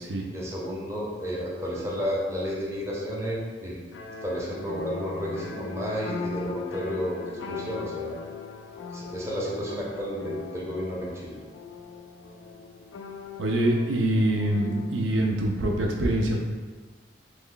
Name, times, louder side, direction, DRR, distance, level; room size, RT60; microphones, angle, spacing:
voice 1, 0.3-3.8 4.2-8.2 8.9-11.4, equal, 15° right, -5 dB, 0.6 m, -32 dB
sound 1, 3.9-15.2, left 4 dB, 80° left, 0.3 m, -39 dB
voice 2, 13.4-16.4, right 1 dB, 80° right, 0 dB, 0.5 m, -24 dB
3.1 x 2.2 x 3.8 m, 1.4 s
head